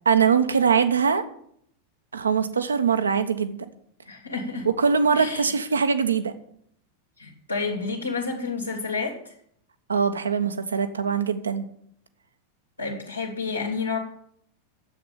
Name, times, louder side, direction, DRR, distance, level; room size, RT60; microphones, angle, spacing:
voice 1, 0.1-1.2 2.1-3.6 4.8-6.3 9.9-11.7, right 6 dB, 70° right, 10 dB, 1.0 m, -22 dB
voice 2, 4.1-4.6 5.1-5.5 7.2-9.3 12.8-14.0, left 4 dB, 85° left, 0 dB, 2.4 m, -30 dB
10.0 x 8.0 x 8.6 m, 0.67 s
figure-of-eight pair, 90°, 0 cm